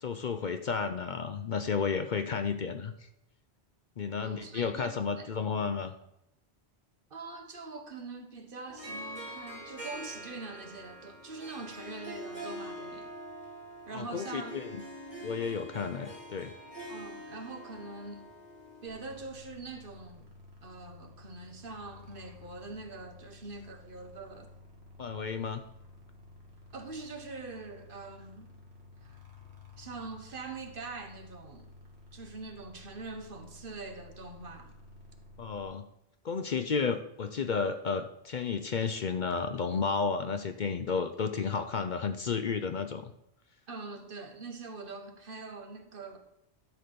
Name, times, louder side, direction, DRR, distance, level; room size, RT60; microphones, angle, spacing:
voice 1, 0.0-2.9 4.0-5.9 13.9-14.8 15.2-16.5 25.0-25.6 35.4-35.8 36.2-43.1, left 5 dB, 55° left, 0.7 m, -32 dB
voice 2, 4.2-5.3 7.1-13.1 13.9-14.6 16.9-18.3 18.8-20.3 20.6-24.5 26.7-28.5 29.0-29.2 29.8-31.7 32.1-34.7 43.7-46.2, right 3 dB, 55° right, 1.3 m, -43 dB
Harp, 8.7-19.0, equal, 40° right, 3.4 m, -44 dB
sound 1, 18.9-35.6, left 2 dB, 75° right, 2.3 m, -53 dB
12.0 x 4.0 x 6.7 m
omnidirectional pair, 1.1 m